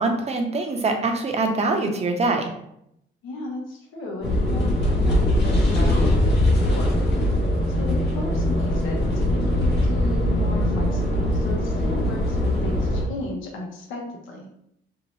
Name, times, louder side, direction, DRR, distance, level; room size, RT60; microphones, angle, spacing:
voice 1, 0.0-2.4, right 3 dB, 30° right, 3 dB, 0.6 m, -23 dB
voice 2, 3.2-7.3 7.7-14.5, left 2 dB, 90° left, -1 dB, 0.7 m, -35 dB
sound 1, 4.2-13.0, left 1 dB, 55° left, 0.8 m, -21 dB
2.7 x 2.1 x 3.0 m, 0.76 s
cardioid pair, 90°, 20 cm